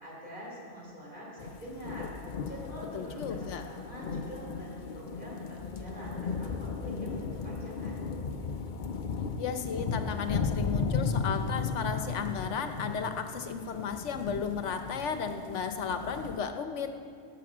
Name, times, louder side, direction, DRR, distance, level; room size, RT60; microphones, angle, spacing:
voice 1, 0.0-2.1 2.5-8.1, equal, 45° right, -5 dB, 3.8 m, -45 dB
sound 1, 1.4-16.4, left 5 dB, 50° left, 0.7 m, -35 dB
voice 2, 2.9-3.7 9.4-16.9, left 6 dB, 75° left, 7 dB, 1.2 m, -34 dB
18.0 x 6.7 x 6.2 m, 2.4 s
omnidirectional pair, 1.2 m